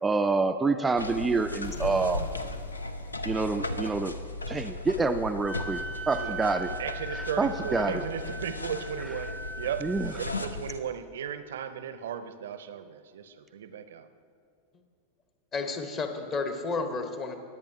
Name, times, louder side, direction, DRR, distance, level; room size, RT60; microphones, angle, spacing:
voice 1, 0.0-2.3 3.3-4.1 4.5-5.8 6.1-6.7 7.1-8.0 9.8-10.1, right 3 dB, 10° right, 7 dB, 0.4 m, -27 dB
sound 1, 1.0-10.8, left 2 dB, 80° left, 0.5 m, -37 dB
sound 2, 1.6-4.3, left 2 dB, 50° left, 1.2 m, -45 dB
Wind instrument woodwind instrument, 5.4-10.1, right 3 dB, 5° left, 0.8 m, -40 dB
voice 2, 6.8-9.3 9.6-9.8 10.1-14.1, right 8 dB, 60° right, 11 dB, 0.6 m, -36 dB
voice 3, 15.5-17.4, left 4 dB, 30° left, 6 dB, 1.1 m, -31 dB
20.5 x 8.6 x 2.7 m, 2.4 s
figure-of-eight pair, 90°, 0 cm